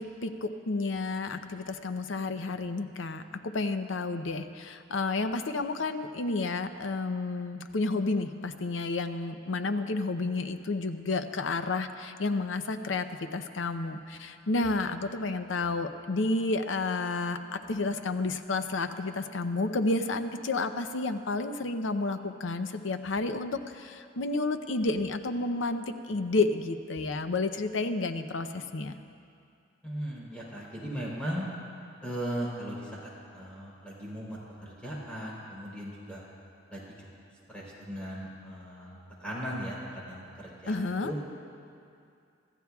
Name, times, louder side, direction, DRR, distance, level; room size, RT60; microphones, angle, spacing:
voice 1, 0.0-13.1 13.3-17.4 17.7-29.0 40.7-41.1, left 3 dB, 80° left, 8 dB, 0.7 m, -31 dB
voice 2, 29.8-31.4 32.0-36.2 36.7-36.8 37.5-40.8 41.0-41.2, equal, 5° left, -6 dB, 3.7 m, -38 dB
25.0 x 14.0 x 2.4 m, 2.5 s
head